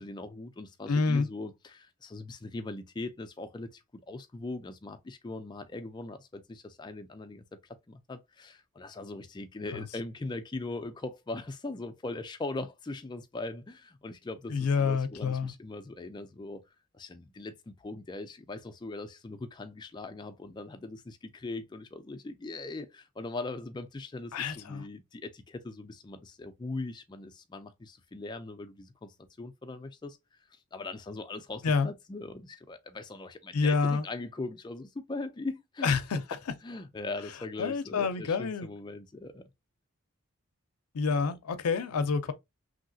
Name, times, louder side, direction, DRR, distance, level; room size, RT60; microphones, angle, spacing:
voice 1, 0.0-7.4 7.9-16.6 16.9-30.2 30.5-36.0 36.6-39.4 41.1-41.3, left 2 dB, 20° left, 0.3 m, -40 dB
voice 2, 0.9-1.3 14.5-15.5 24.3-24.9 31.6-31.9 33.5-34.1 35.8-36.2 37.6-38.7 40.9-42.3, left 5 dB, 85° left, 0.5 m, -28 dB
3.2 x 2.7 x 2.6 m
head